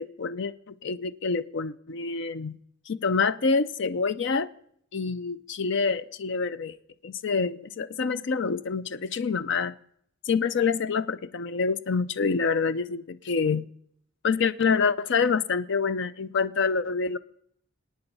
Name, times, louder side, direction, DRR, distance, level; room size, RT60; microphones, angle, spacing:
voice 1, 0.0-2.6 2.9-4.5 4.9-6.8 7.0-9.7 10.2-13.6 14.2-17.2, left 5 dB, 60° left, 15 dB, 0.5 m, -27 dB
26.0 x 9.0 x 5.4 m, 0.69 s
head